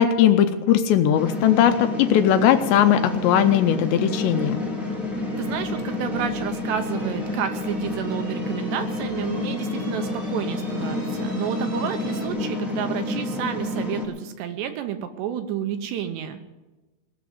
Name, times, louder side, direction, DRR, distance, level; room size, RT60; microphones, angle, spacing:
voice 1, 0.0-4.6, left 10 dB, 80° left, 8 dB, 2.7 m, -19 dB
sound 1, 1.0-12.3, right 1 dB, 30° right, 0.8 m, -45 dB
sound 2, 1.1-14.0, left 2 dB, ahead, 0.7 m, -29 dB
voice 2, 5.4-16.4, right 9 dB, 75° right, 7 dB, 2.7 m, -30 dB
18.5 x 6.8 x 9.5 m, 1.1 s
omnidirectional pair, 5.4 m